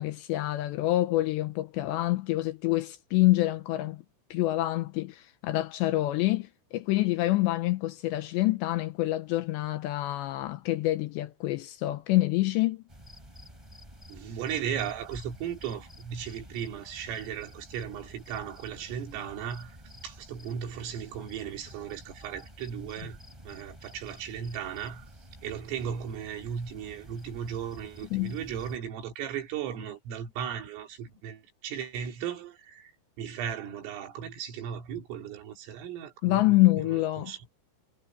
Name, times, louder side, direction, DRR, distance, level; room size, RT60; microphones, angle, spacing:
voice 1, 0.0-4.0 4.3-12.8 28.1-28.4 36.2-37.3, left 17 dB, 80° left, 2.6 m, -27 dB
sound 1, 12.9-28.8, equal, 5° right, 4.1 m, -50 dB
voice 2, 14.1-23.2 23.5-25.1 25.4-32.9 33.2-37.5, right 8 dB, 90° right, 5.7 m, -36 dB
omnidirectional pair, 5.7 m